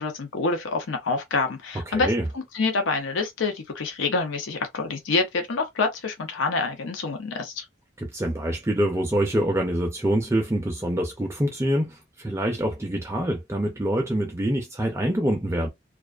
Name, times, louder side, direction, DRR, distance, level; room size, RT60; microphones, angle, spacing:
voice 1, 0.0-2.1 2.3-7.7, left 3 dB, 85° left, 0.6 m, -27 dB
voice 2, 1.9-2.2 8.0-15.7, right 1 dB, 15° right, 0.3 m, -25 dB
2.4 x 2.3 x 2.2 m
head